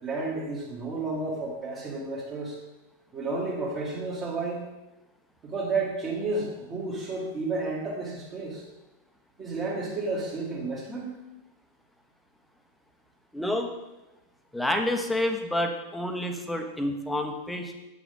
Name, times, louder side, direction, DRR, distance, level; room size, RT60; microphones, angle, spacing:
voice 1, 0.0-2.6 3.1-4.6 5.4-8.6 9.4-11.1, right 3 dB, 30° right, -7 dB, 1.9 m, -31 dB
voice 2, 13.3-13.7 14.5-17.7, left 1 dB, 5° left, 4 dB, 1.0 m, -29 dB
8.5 x 6.1 x 5.2 m, 1.0 s
figure-of-eight pair, 90°, 0 cm